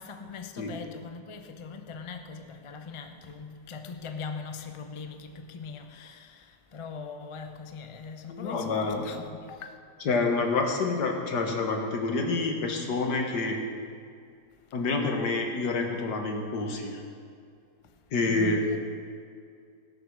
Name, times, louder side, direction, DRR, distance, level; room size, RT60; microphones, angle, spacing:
voice 1, 0.0-9.8 18.3-18.6, left 5 dB, 55° left, 0.3 m, -41 dB
voice 2, 8.3-9.1 10.1-13.6 14.7-17.0 18.1-18.6, left 3 dB, 80° left, 2.0 m, -28 dB
17.0 x 6.7 x 6.3 m
omnidirectional pair, 1.8 m